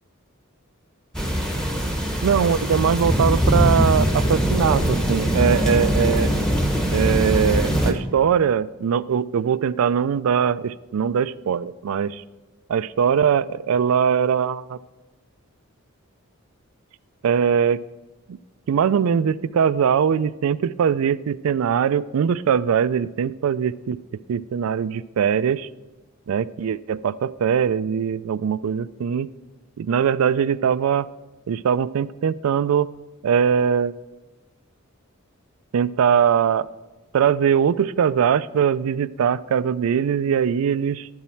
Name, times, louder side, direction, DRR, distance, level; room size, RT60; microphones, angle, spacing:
sound 1, 1.1-7.9, equal, 5° left, 1.0 m, -21 dB
voice 1, 2.2-6.3 6.9-12.2 12.7-14.8 17.2-17.8 18.3-18.4 18.7-24.0 24.3-25.7 26.3-29.3 29.8-31.1 31.5-32.9 33.2-33.9 35.7-36.7 37.1-41.1, right 7 dB, 80° right, 18 dB, 0.3 m, -21 dB
11.5 x 7.1 x 4.4 m, 1.1 s
head